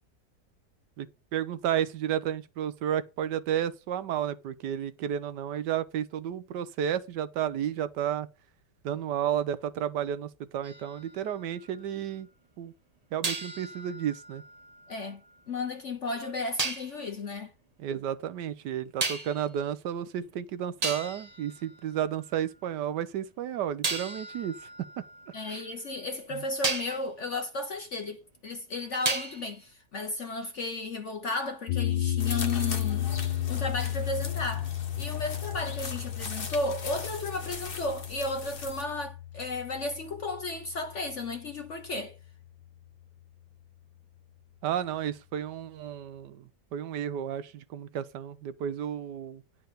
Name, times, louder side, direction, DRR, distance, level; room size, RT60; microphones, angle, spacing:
voice 1, 1.3-8.3 8.8-12.3 12.6-12.7 13.1-14.4 17.8-24.9 25.5-25.6 26.3-26.4 44.6-49.4, right 10 dB, 80° right, 1.3 m, -32 dB
sound 1, 10.6-12.1 13.2-15.4 16.6-17.0 19.0-19.5 20.3-20.4 20.8-22.4 23.8-26.0 26.6-27.1 29.1-29.6, right 3 dB, 25° right, 1.0 m, -35 dB
voice 2, 14.9-15.2 15.5-17.5 25.3-42.2, left 2 dB, 50° left, 1.1 m, -34 dB
sound 2, 31.7-41.9, left 12 dB, 85° left, 1.4 m, -33 dB
sound 3, 32.2-38.9, left 4 dB, 35° left, 1.4 m, -40 dB
10.5 x 4.6 x 6.6 m
omnidirectional pair, 1.8 m